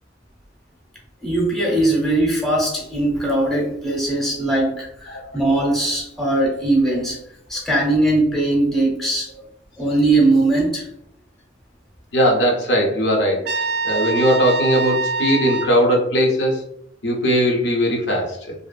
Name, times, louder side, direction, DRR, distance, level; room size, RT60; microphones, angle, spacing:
voice 1, 1.2-7.2 7.5-9.3 9.8-10.9, right 2 dB, ahead, -3 dB, 0.7 m, -20 dB
voice 2, 12.1-16.6 17.0-18.4, equal, 70° left, 0 dB, 0.6 m, -19 dB
Trumpet, 13.4-15.8, right 4 dB, 60° right, 0.3 m, -24 dB
2.6 x 2.4 x 2.3 m, 0.74 s
head